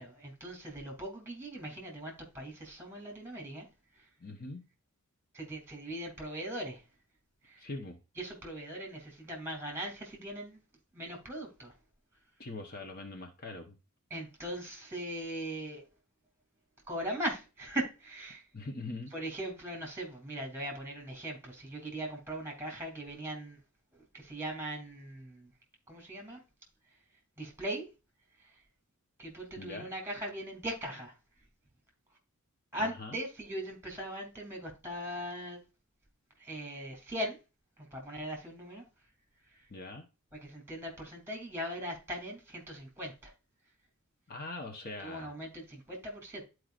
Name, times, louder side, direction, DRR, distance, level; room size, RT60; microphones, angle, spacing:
voice 1, 0.0-3.7 3.9-4.1 5.3-6.8 7.4-7.7 8.2-10.6 10.9-11.7 14.1-15.8 16.9-18.5 19.1-23.6 23.9-25.5 25.9-26.4 27.4-27.8 28.4-28.5 29.2-31.1 32.7-35.6 36.4-37.4 37.8-38.8 39.5-39.7 40.3-43.3 45.0-46.4, right 1 dB, 10° right, 2.8 m, -40 dB
voice 2, 4.2-4.7 7.6-8.0 12.4-13.7 18.5-19.1 29.6-29.9 32.8-33.2 39.7-40.1 44.3-45.3, left 2 dB, 45° left, 1.0 m, -42 dB
12.0 x 4.7 x 2.5 m
head